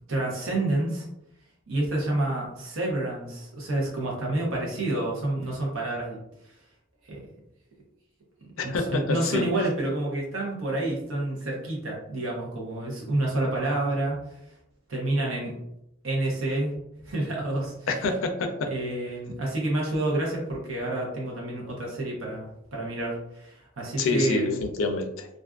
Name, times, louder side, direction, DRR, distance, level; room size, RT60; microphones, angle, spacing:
voice 1, 0.1-1.1 1.7-6.2 7.0-7.2 8.6-14.4 14.9-15.5 16.0-16.7 17.0-18.0 18.7-24.7, right 2 dB, 90° right, -3 dB, 0.8 m, -29 dB
voice 2, 8.6-9.5 17.9-18.7 24.0-25.3, left 3 dB, 80° left, 5 dB, 0.4 m, -27 dB
2.4 x 2.3 x 2.3 m, 0.81 s
head